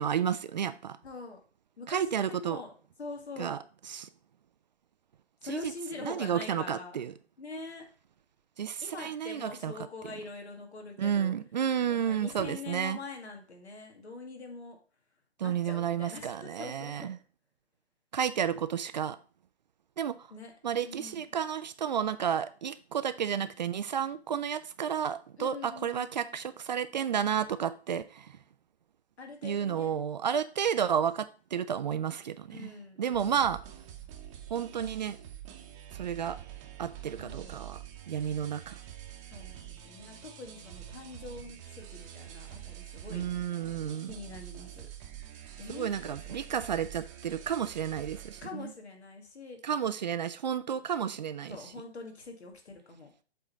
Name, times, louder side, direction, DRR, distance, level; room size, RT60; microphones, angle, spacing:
voice 1, 0.0-1.0 1.9-2.6 3.4-3.6 3.9-4.1 5.5-5.7 6.0-7.1 8.6-9.9 11.0-13.0 15.4-17.2 18.1-19.2 20.0-20.3 20.6-28.4 29.4-32.7 33.0-33.6 34.5-35.2 35.9-36.4 36.8-38.8 43.1-44.1 45.7-48.7 49.6-51.7, right 8 dB, 45° right, 0.4 m, -31 dB
voice 2, 1.0-1.4 1.8-2.0 2.3-2.7 3.0-3.6 5.4-7.0 7.4-7.9 8.8-11.3 11.9-14.8 15.4-17.1 20.3-20.5 20.9-21.2 25.4-26.1 29.2-30.0 32.5-33.5 37.2-37.6 39.3-43.2 44.0-44.9 45.6-46.4 48.4-49.6 51.5-53.1, left 3 dB, 75° left, 2.1 m, -44 dB
sound 1, 33.1-48.5, right 11 dB, 30° right, 1.0 m, -46 dB
7.6 x 3.8 x 4.2 m
figure-of-eight pair, 135°, 33 cm